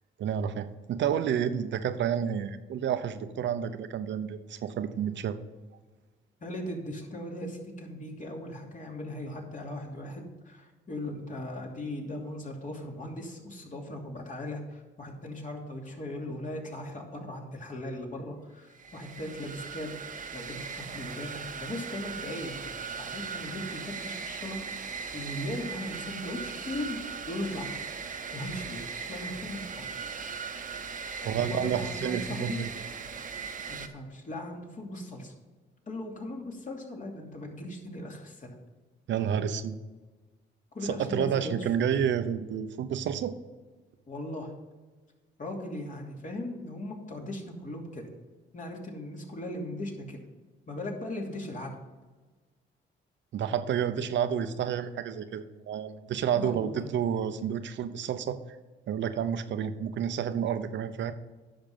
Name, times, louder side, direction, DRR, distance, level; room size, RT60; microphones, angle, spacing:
voice 1, 0.2-5.4 31.2-32.7 39.1-39.8 40.8-43.3 53.3-58.4 58.9-61.1, right 8 dB, 70° right, 11 dB, 0.8 m, -30 dB
voice 2, 6.4-20.0 20.3-22.7 23.0-24.6 24.9-27.8 28.3-30.1 31.2-32.6 33.7-35.3 35.9-38.5 40.7-41.9 44.1-44.5 45.4-48.1 48.5-50.2 50.7-51.8 56.3-56.8, left 1 dB, 40° left, 0 dB, 2.8 m, -38 dB
sound 1, 18.7-33.9, right 5 dB, 40° right, 1.0 m, -39 dB
10.5 x 6.3 x 5.5 m, 1.3 s
cardioid pair, 90°, 20 cm